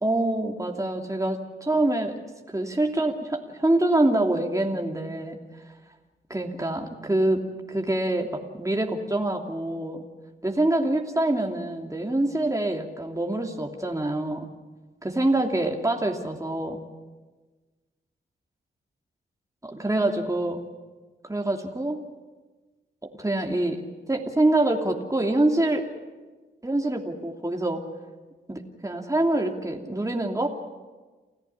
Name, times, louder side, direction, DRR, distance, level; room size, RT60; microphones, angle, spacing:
voice 1, 0.0-2.2 2.5-5.4 6.3-7.4 7.7-10.0 10.4-14.5 15.0-16.8 19.6-20.6 21.2-22.0 23.0-23.8 24.1-25.9 26.6-27.8 28.5-30.5, right 1 dB, 15° right, 2 dB, 2.8 m, -25 dB
29.0 x 14.0 x 10.0 m, 1.3 s
cardioid pair, 45°, 21 cm